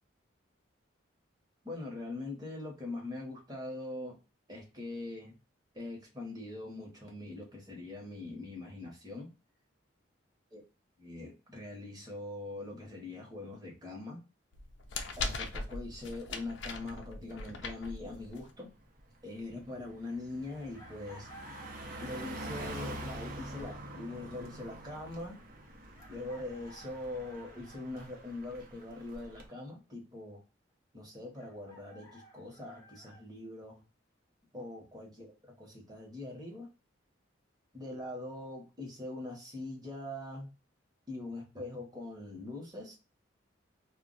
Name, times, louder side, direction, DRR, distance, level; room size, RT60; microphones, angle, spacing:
voice 1, 1.6-4.2 4.5-5.3 5.7-9.3 10.5-10.6 11.0-14.2 15.2-18.7 19.2-21.3 22.0-25.4 26.1-30.4 30.9-33.8 34.5-35.3 35.6-36.7 37.7-40.5 41.1-42.9, left 2 dB, 20° right, -1 dB, 0.9 m, -42 dB
sound 1, 14.5-18.5, left 3 dB, 70° left, 0.5 m, -40 dB
Car passing by, 17.9-18.1 18.5-29.5, right 1 dB, 45° right, 0.6 m, -46 dB
Chicken rooster, 20.7-22.7 24.4-24.5 25.9-27.9 31.3-33.2, equal, 15° left, 0.6 m, -56 dB
2.3 x 2.2 x 3.8 m, 0.30 s
head